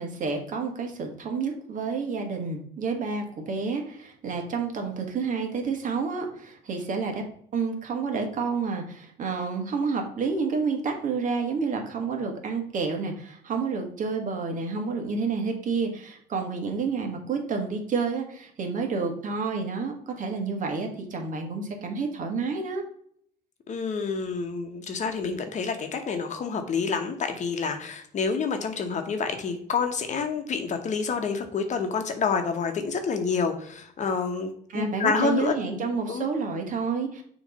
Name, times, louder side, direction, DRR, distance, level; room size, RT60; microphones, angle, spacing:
voice 1, 0.0-7.2 7.5-22.8 34.7-37.2, right 4 dB, 50° right, 3 dB, 1.5 m, -29 dB
voice 2, 23.7-35.5 36.1-36.3, left 5 dB, 45° left, 6 dB, 1.0 m, -28 dB
6.4 x 3.1 x 5.2 m, 0.64 s
cardioid pair, 110°, 17 cm